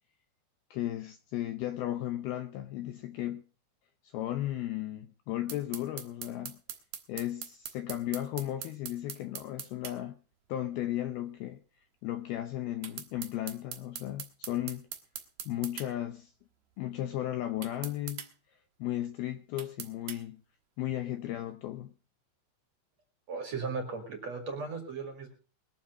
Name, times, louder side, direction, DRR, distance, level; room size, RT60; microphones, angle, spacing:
voice 1, 0.7-3.4 4.1-6.6 7.1-10.2 10.5-11.6 12.0-14.9 15.5-16.3 16.8-18.3 18.8-20.4 20.8-21.9, left 13 dB, 75° left, 2.3 m, -35 dB
sound 1, 5.5-10.0 12.8-15.9 17.6-18.3 19.6-20.2, right 9 dB, 65° right, 1.9 m, -41 dB
voice 2, 23.3-25.3, right 4 dB, 45° right, 2.7 m, -36 dB
21.5 x 7.4 x 5.4 m
omnidirectional pair, 5.2 m